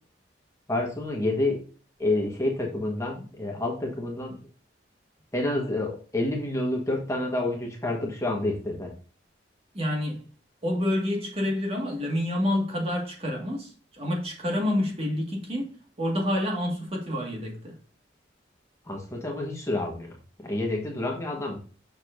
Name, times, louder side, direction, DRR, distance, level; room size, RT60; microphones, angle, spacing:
voice 1, 0.7-1.6 2.0-4.4 5.3-8.9 18.8-21.6, left 2 dB, 15° left, 1.4 m, -29 dB
voice 2, 9.7-10.2 10.6-17.8, left 1 dB, 30° right, 1.9 m, -28 dB
6.8 x 6.8 x 2.6 m
head